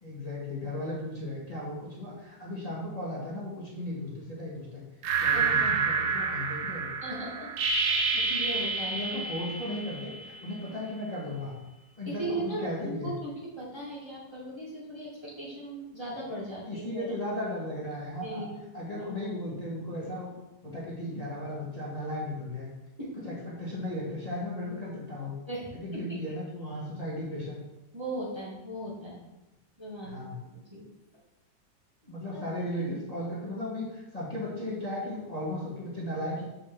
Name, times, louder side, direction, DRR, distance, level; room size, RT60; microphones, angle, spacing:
voice 1, 0.0-4.8 5.2-6.9 8.9-11.6 12.0-13.1 16.7-18.5 18.7-20.3 20.6-22.7 23.2-25.3 25.7-27.6 30.0-30.4 32.0-36.4, left 1 dB, 20° left, -6 dB, 2.0 m, -36 dB
sound 1, 5.0-10.5, right 4 dB, 70° right, 1.3 m, -29 dB
voice 2, 5.3-5.8 7.0-7.5 7.8-9.1 12.0-13.3 13.6-17.2 18.2-18.7 19.0-19.1 23.0-23.2 25.5-26.2 27.9-29.2 29.8-30.4 30.7-30.9 32.3-32.4, right 1 dB, 15° right, -7 dB, 2.2 m, -38 dB
6.8 x 5.0 x 7.0 m, 0.99 s
omnidirectional pair, 1.9 m